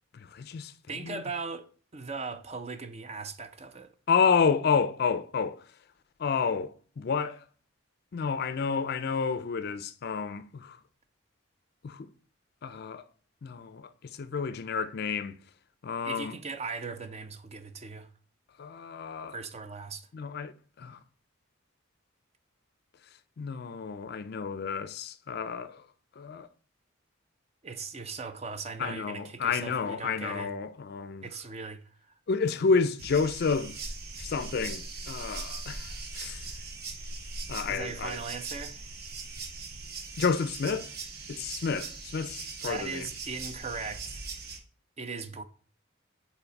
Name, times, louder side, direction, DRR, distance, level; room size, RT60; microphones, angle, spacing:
voice 1, 0.1-0.7 1.0-1.2 4.1-5.6 6.2-7.4 8.1-10.8 11.8-12.1 12.6-13.1 13.4-15.4 15.8-16.4 18.6-19.4 20.1-21.0 23.4-25.8 26.2-26.5 28.8-31.3 32.3-33.8 34.2-36.5 37.5-38.2 40.2-40.9 41.3-43.1, left 5 dB, 50° left, 0.4 m, -30 dB
voice 2, 0.9-1.7 1.9-3.9 16.0-18.1 19.3-20.1 27.6-30.5 31.2-31.8 37.7-38.9 42.7-44.2 45.0-45.4, right 4 dB, 30° right, 0.5 m, -38 dB
sound 1, 33.0-44.6, right 3 dB, 50° right, 0.9 m, -40 dB
5.7 x 4.2 x 4.0 m
head